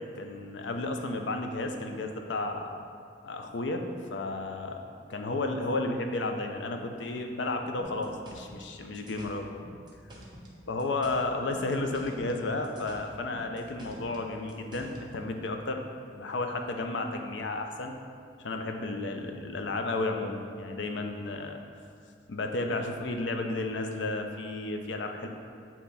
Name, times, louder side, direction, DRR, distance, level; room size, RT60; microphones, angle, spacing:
voice 1, 0.1-2.7 3.2-4.8 5.1-9.5 10.7-15.8 16.1-18.0 18.4-21.6 22.3-25.3, left 2 dB, 70° left, 4 dB, 0.5 m, -32 dB
sound 1, 7.8-10.5 10.8-12.4 12.6-15.0, equal, 25° right, 0.8 m, -48 dB
8.3 x 2.9 x 4.1 m, 2.3 s
head